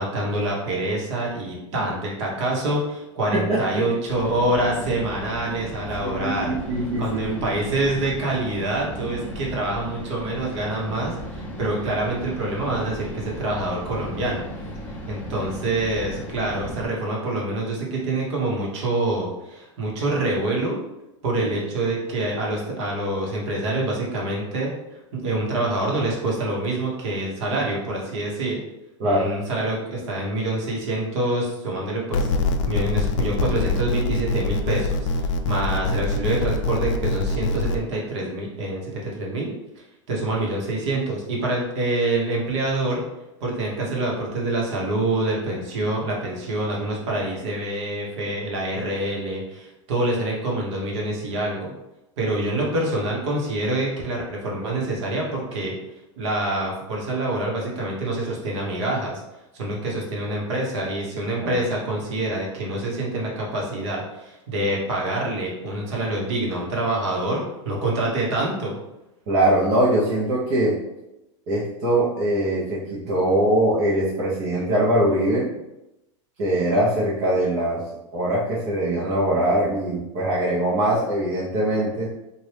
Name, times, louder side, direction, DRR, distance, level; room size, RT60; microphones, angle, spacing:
voice 1, 0.0-6.5 7.0-14.7 15.1-20.8 21.2-24.7 25.1-28.6 29.0-32.3 32.6-39.5 40.1-43.0 43.4-51.7 52.2-55.7 56.2-59.2 59.5-68.8, right 2 dB, 65° right, -3 dB, 1.2 m, -26 dB
voice 2, 3.5-3.9 6.0-7.4 21.4-21.5 29.0-29.3 69.3-70.8 71.5-75.5 76.4-77.8 78.1-82.1, right 1 dB, 45° right, -7 dB, 0.9 m, -22 dB
sound 1, 4.1-16.9, equal, 10° left, 0.6 m, -36 dB
sound 2, 32.1-37.8, left 3 dB, 75° left, 0.4 m, -24 dB
3.0 x 2.5 x 3.3 m, 0.93 s
supercardioid pair, 135°, 16 cm